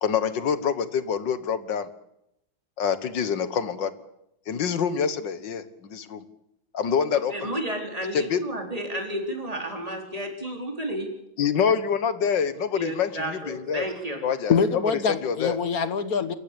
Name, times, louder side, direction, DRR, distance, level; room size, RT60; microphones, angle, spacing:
voice 1, 0.0-1.9 2.8-3.9 4.5-6.2 6.7-7.5 8.1-8.4 11.4-14.6 15.2-15.6, left 7 dB, 65° left, 13 dB, 2.0 m, -26 dB
voice 2, 7.3-11.1 12.7-14.2, right 1 dB, 15° right, 2 dB, 4.5 m, -32 dB
voice 3, 14.5-16.3, left 6 dB, 50° left, 12 dB, 1.7 m, -24 dB
27.5 x 14.5 x 8.7 m, 0.81 s
omnidirectional pair, 2.1 m